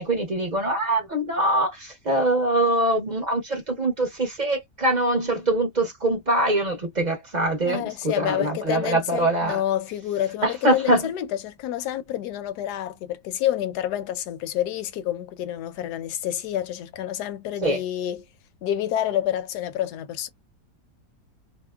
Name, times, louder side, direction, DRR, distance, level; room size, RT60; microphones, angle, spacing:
voice 1, 0.0-9.6 10.4-11.1 17.6-17.8, right 1 dB, 35° right, 0.7 m, -23 dB
voice 2, 7.6-18.2 18.6-20.3, left 11 dB, 75° left, 1.1 m, -28 dB
2.8 x 2.1 x 2.2 m
omnidirectional pair, 1.8 m